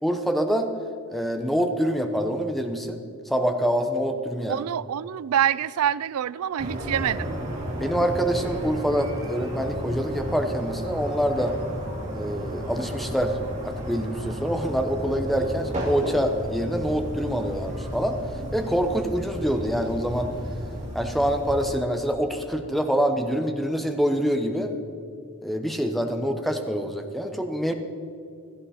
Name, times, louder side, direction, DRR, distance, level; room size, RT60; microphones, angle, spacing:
voice 1, 0.0-0.7 1.1-4.5 7.8-11.5 12.1-13.3 13.6-18.2 18.5-20.3 20.9-24.7 25.4-27.7, equal, ahead, 5 dB, 0.9 m, -25 dB
voice 2, 4.5-7.4, right 9 dB, 80° right, 20 dB, 0.4 m, -26 dB
sound 1, 6.6-21.7, equal, 35° right, 2.6 m, -33 dB
16.0 x 14.0 x 4.3 m, 2.5 s
head